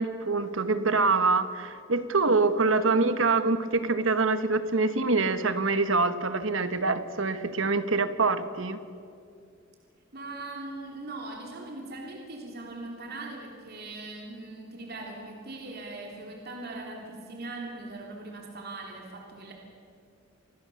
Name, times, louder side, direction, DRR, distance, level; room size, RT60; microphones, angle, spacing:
voice 1, 0.0-8.8, right 3 dB, 70° right, 11 dB, 1.4 m, -25 dB
voice 2, 10.1-19.5, right 2 dB, 50° right, 1 dB, 3.1 m, -40 dB
28.0 x 21.0 x 7.1 m, 2.4 s
head